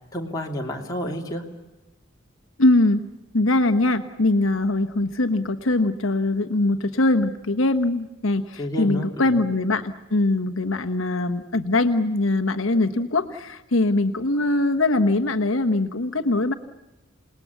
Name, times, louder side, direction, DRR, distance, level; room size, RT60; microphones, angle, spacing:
voice 1, 0.1-1.4 8.6-9.3, equal, 20° left, -1 dB, 3.0 m, -30 dB
voice 2, 2.6-3.1 3.3-16.5, left 2 dB, 75° left, 8 dB, 1.2 m, -22 dB
28.0 x 20.0 x 8.3 m, 1.0 s
head